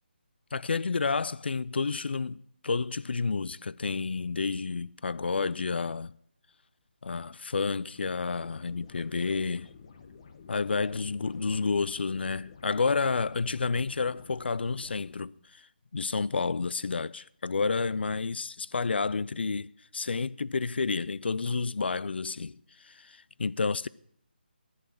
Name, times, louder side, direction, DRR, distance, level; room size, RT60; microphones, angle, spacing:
voice 1, 0.5-6.1 7.0-9.7 10.5-15.7 15.9-23.9, left 4 dB, 75° left, 0.4 m, -30 dB
sound 1, 7.9-15.1, left 5 dB, 35° left, 1.0 m, -51 dB
11.0 x 9.1 x 6.5 m
figure-of-eight pair, 165°, 6 cm